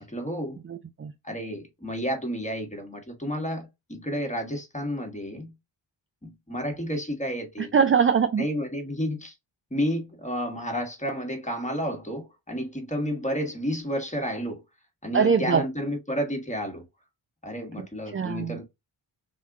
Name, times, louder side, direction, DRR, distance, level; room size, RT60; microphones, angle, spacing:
voice 1, 0.0-0.6 1.2-5.5 6.2-7.7 8.4-9.3 9.7-14.6 15.0-16.8 17.4-18.6, equal, 15° left, 1.4 m, -31 dB
voice 2, 0.7-1.1 7.6-8.5 15.1-15.6 17.8-17.9 18.1-18.6, right 6 dB, 30° right, 0.4 m, -22 dB
3.6 x 2.7 x 3.5 m
cardioid pair, 65°, 46 cm